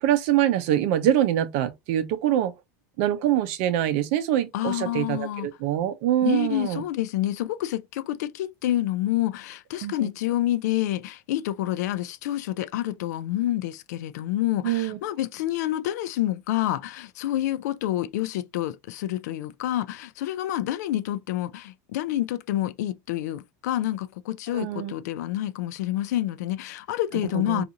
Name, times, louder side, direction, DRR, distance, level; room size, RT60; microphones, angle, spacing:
voice 1, 0.0-2.5 3.0-6.8 9.8-9.9 14.6-15.0 24.5-24.9 27.3-27.6, right 11 dB, 55° right, 0.5 m, -24 dB
voice 2, 4.5-5.5 6.2-27.6, left 13 dB, 90° left, 0.3 m, -28 dB
2.5 x 2.5 x 2.7 m
supercardioid pair, 170°, 9 cm